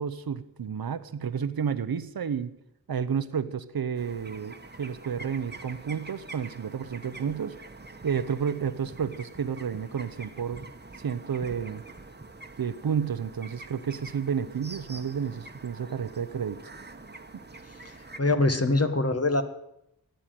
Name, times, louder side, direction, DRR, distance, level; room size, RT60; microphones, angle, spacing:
voice 1, 0.0-2.5 2.9-7.6 8.0-10.6 11.0-11.8 12.6-16.6, right 7 dB, 80° right, 14 dB, 0.8 m, -31 dB
sound 1, 3.9-18.2, right 3 dB, 30° right, 1.2 m, -46 dB
voice 2, 18.2-19.4, left 2 dB, 45° left, 8 dB, 1.4 m, -23 dB
14.5 x 9.1 x 9.1 m, 0.81 s
wide cardioid pair, 60°, 35 cm